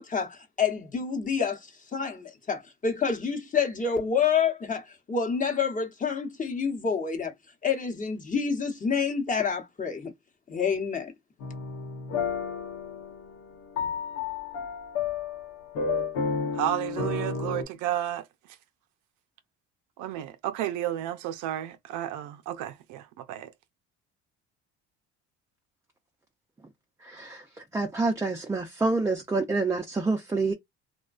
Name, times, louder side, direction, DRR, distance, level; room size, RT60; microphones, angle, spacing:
voice 1, 0.0-7.3 7.6-10.1 10.5-11.1, left 6 dB, 25° left, 0.9 m, -28 dB
sound 1, 11.4-17.6, left 5 dB, 85° left, 1.0 m, -32 dB
voice 2, 16.5-18.2 20.0-23.5, right 12 dB, 75° right, 0.6 m, -32 dB
voice 3, 27.0-27.4 27.7-30.5, right 3 dB, 10° right, 0.4 m, -27 dB
2.4 x 2.2 x 2.4 m
cardioid pair, 95°, 31 cm